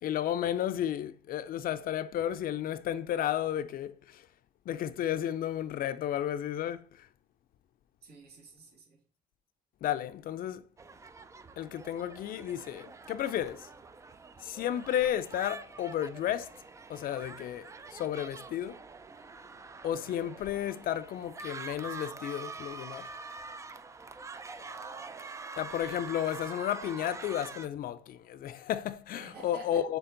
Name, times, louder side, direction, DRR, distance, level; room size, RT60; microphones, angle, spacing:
voice 1, 0.0-4.2 4.7-7.1 9.8-10.6 11.6-13.7 14.4-16.5 16.9-18.8 19.8-23.1 25.6-30.0, left 11 dB, 60° left, 0.5 m, -33 dB
voice 2, 8.0-9.0 24.3-25.2 29.1-29.8, right 2 dB, 70° right, 2.6 m, -50 dB
sound 1, 10.8-27.7, right 4 dB, 20° right, 0.4 m, -46 dB
7.0 x 3.5 x 3.9 m
cardioid pair, 110°, 17 cm